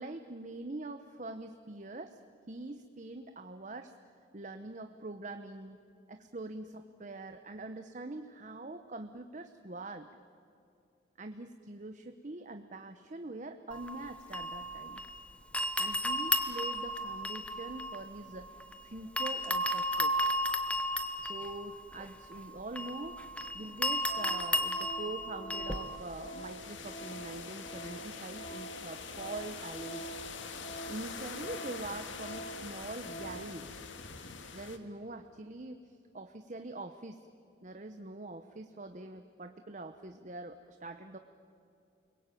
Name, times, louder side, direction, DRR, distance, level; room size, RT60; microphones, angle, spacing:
voice 1, 0.0-2.2 2.5-3.9 4.3-5.8 6.1-10.1 11.2-15.0 15.8-18.5 18.8-20.2 21.2-23.2 23.5-30.1 30.9-33.7 34.5-37.2 37.6-41.2, right 2 dB, 40° right, 7 dB, 0.9 m, -44 dB
sound 1, 13.7-15.2 15.5-18.8 19.2-26.0, left 1 dB, 5° left, 1.2 m, -34 dB
Organ, 23.6-23.8 24.1-33.6 34.0-34.1, right 1 dB, 35° left, 1.8 m, -47 dB
sound 2, 25.8-34.8, left 5 dB, 85° left, 1.8 m, -45 dB
29.5 x 22.0 x 9.2 m, 2.6 s
head